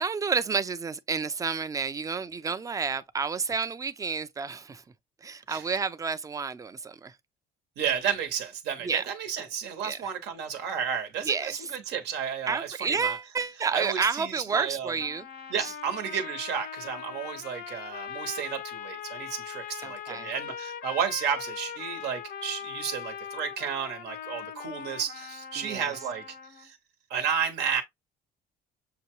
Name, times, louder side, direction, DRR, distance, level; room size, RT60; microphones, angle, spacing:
voice 1, 0.0-4.8 5.2-7.1 8.8-9.0 9.8-10.0 11.2-11.7 12.5-15.3 15.6-15.7 19.8-20.3 25.6-25.9, right 5 dB, 20° right, 0.5 m, -30 dB
voice 2, 7.8-13.2 13.7-14.9 15.5-26.2 26.5-26.8 27.1-27.8, right 7 dB, 80° right, 1.0 m, -32 dB
sound 1, 15.0-26.7, left 8 dB, 60° left, 0.6 m, -40 dB
6.7 x 2.3 x 2.9 m
cardioid pair, 110°, 17 cm